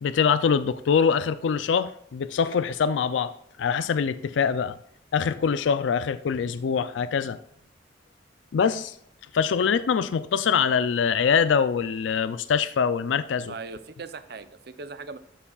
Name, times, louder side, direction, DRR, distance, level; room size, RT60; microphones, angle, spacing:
voice 1, 0.0-3.3 3.6-4.8 5.1-7.4 8.5-9.0 9.3-13.5, left 6 dB, 85° left, 13 dB, 0.4 m, -24 dB
voice 2, 13.5-15.2, right 4 dB, 60° right, 12 dB, 0.6 m, -39 dB
12.5 x 7.0 x 2.3 m, 0.70 s
head